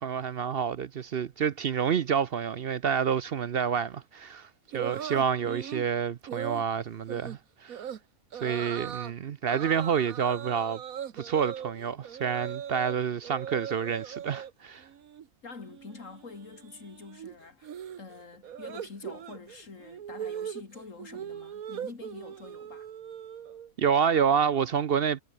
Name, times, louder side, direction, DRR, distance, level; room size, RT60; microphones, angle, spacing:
voice 1, 0.0-7.9 8.3-10.8 11.1-14.9 23.8-25.2, right 7 dB, 55° right, 0.7 m, -28 dB
sound 1, 4.7-5.9 6.3-6.6 7.1-7.4 7.7-8.0 8.3-9.1 9.5-12.9 13.2-14.5 14.8-15.3 15.5-23.7, right 9 dB, 85° right, 1.5 m, -40 dB
voice 2, 15.4-17.7 18.0-22.9, left 4 dB, 65° left, 2.9 m, -46 dB
omnidirectional pair, 1.5 m